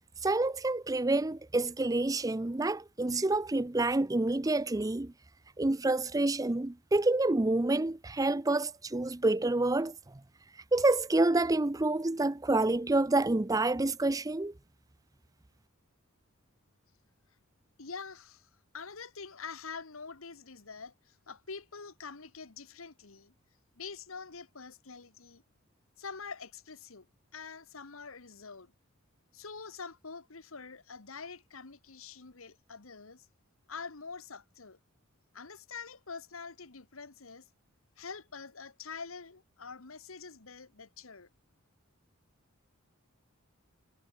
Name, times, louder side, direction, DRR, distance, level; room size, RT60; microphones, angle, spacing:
voice 1, 0.2-5.1 5.6-9.9 10.7-14.5, right 2 dB, 15° right, 0.5 m, -28 dB
voice 2, 17.8-18.5 18.7-23.3 23.8-25.4 26.0-27.1 27.3-28.7 29.3-33.3 33.7-34.8 35.3-37.5 38.0-41.3, left 5 dB, 80° left, 1.6 m, -45 dB
head